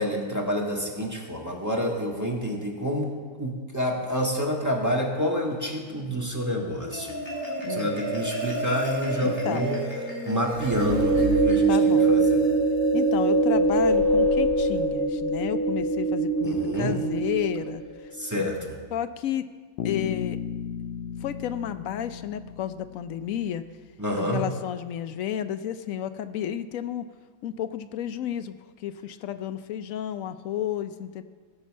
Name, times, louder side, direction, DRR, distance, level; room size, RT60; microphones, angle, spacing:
voice 1, 0.0-7.1 7.7-9.8 10.2-12.4 16.4-17.0 18.1-18.8 24.0-24.5, equal, 10° right, -1 dB, 1.4 m, -28 dB
Marimba xylophone, 6.6-13.2, equal, 15° left, 3.0 m, -33 dB
voice 2, 7.6-8.0 9.2-9.7 11.7-12.1 12.9-18.1 18.9-19.5 19.8-20.4 21.2-23.7 24.1-27.1 27.4-31.2, left 10 dB, 65° left, 10 dB, 0.8 m, -31 dB
sound 1, 10.6-17.9, right 3 dB, 50° right, 1.1 m, -23 dB
Bass guitar, 19.8-23.7, left 8 dB, 90° left, 1.2 m, -35 dB
16.0 x 5.7 x 7.3 m, 1.5 s
omnidirectional pair, 1.8 m